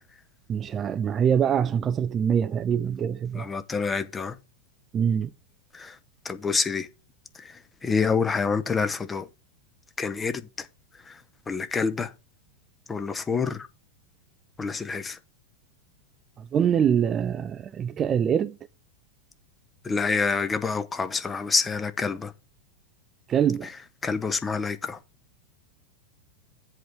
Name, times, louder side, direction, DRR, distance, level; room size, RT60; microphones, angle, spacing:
voice 1, 0.5-3.5 4.9-5.3 16.4-18.6 23.3-23.7, right 8 dB, 25° right, 0.4 m, -24 dB
voice 2, 3.4-4.3 5.7-5.9 6.2-6.9 7.8-9.3 10.0-10.7 11.5-12.1 12.9-13.7 14.6-15.2 19.8-22.3 24.0-25.0, left 5 dB, 15° left, 0.8 m, -27 dB
7.8 x 4.6 x 6.8 m
figure-of-eight pair, 90°, 0 cm